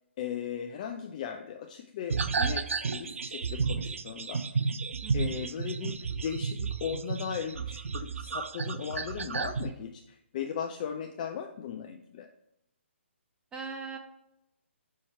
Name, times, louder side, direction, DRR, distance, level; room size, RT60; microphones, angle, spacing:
voice 1, 0.2-4.4 5.1-12.3, left 8 dB, 35° left, 5 dB, 0.4 m, -37 dB
sound 1, 2.1-9.7, right 5 dB, 80° right, 0.4 m, -32 dB
voice 2, 5.0-5.4 13.5-14.0, right 5 dB, 10° right, 2 dB, 0.6 m, -40 dB
5.5 x 3.1 x 5.5 m, 0.83 s
hypercardioid pair, 150°, 7 cm